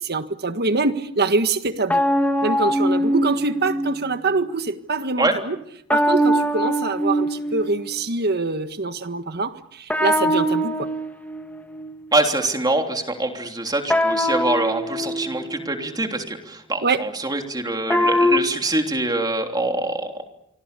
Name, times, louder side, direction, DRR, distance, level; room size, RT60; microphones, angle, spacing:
voice 1, 0.0-2.0 2.4-5.6 5.9-10.9 16.8-17.0, right 3 dB, 50° right, 1.6 m, -24 dB
sound 1, 1.9-4.1 5.9-8.0 9.9-11.9 13.9-15.8 17.9-18.4, equal, 5° left, 2.1 m, -22 dB
voice 2, 12.1-20.2, right 2 dB, 20° right, 3.3 m, -24 dB
28.5 x 24.5 x 6.9 m
head